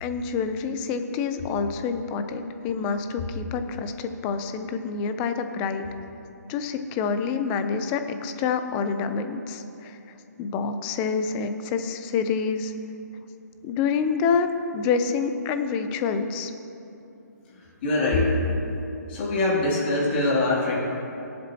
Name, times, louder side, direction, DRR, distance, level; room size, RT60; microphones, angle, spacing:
voice 1, 0.0-5.9 6.5-10.0 10.4-12.7 13.6-16.5, left 5 dB, 15° left, 8 dB, 0.4 m, -27 dB
voice 2, 17.8-18.4 19.1-20.7, left 2 dB, 35° left, -6 dB, 2.7 m, -23 dB
21.5 x 7.6 x 2.8 m, 2.8 s
hypercardioid pair, 160°, 10 cm